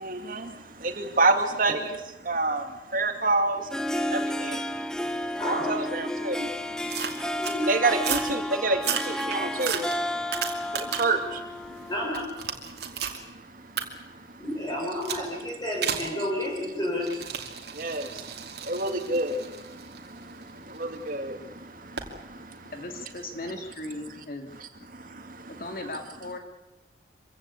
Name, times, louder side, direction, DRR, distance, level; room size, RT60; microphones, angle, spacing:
voice 1, 0.0-0.4 1.0-1.7 2.3-2.6 2.9-3.6 4.1-4.5 5.5-6.5 7.6-8.8 9.3-9.8 11.0-11.2 17.8-18.0 18.7-19.3 20.8-21.3, right 3 dB, 50° right, 6 dB, 2.4 m, -26 dB
Harp, 3.5-12.3, left 1 dB, 5° left, 0.9 m, -32 dB
voice 2, 5.4-5.8 7.4-7.9 11.9-12.3 14.4-17.1, left 1 dB, 25° left, -3 dB, 4.7 m, -30 dB
sound 1, 6.9-7.6 8.0-8.3 8.7-11.2 11.6-13.2 13.8-13.9 15.0-15.3 15.8-16.1 17.0-21.0 22.0-22.1, right 7 dB, 70° right, 2.7 m, -33 dB
voice 3, 22.7-24.5 25.5-26.4, left 2 dB, 55° left, 5 dB, 2.5 m, -37 dB
25.5 x 16.0 x 8.5 m, 1.1 s
head